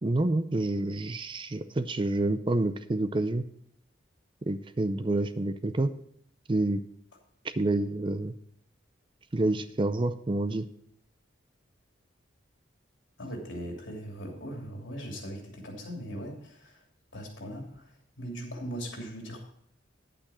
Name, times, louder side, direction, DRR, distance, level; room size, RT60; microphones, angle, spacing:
voice 1, 0.0-3.5 4.5-5.9 6.5-6.8 7.4-8.3 9.3-10.7, right 2 dB, 25° right, 12 dB, 0.5 m, -28 dB
voice 2, 13.2-16.8 17.1-19.4, equal, 75° left, 1 dB, 2.9 m, -39 dB
10.0 x 8.8 x 4.3 m, 0.69 s
head